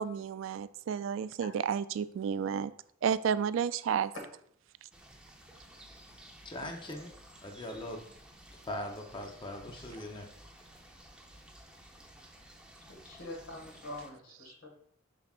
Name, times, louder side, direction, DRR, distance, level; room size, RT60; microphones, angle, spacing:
voice 1, 0.0-2.7 3.0-4.1 6.6-6.7, right 7 dB, 75° right, 16 dB, 0.3 m, -31 dB
sound 1, 4.9-14.1, right 1 dB, 5° right, 0.7 m, -54 dB
voice 2, 6.4-7.1 7.4-8.0 8.7-10.2, left 1 dB, 25° left, 2 dB, 0.7 m, -40 dB
voice 3, 12.9-14.7, left 1 dB, 75° left, 1 dB, 1.9 m, -45 dB
7.1 x 5.8 x 2.4 m, 0.64 s
head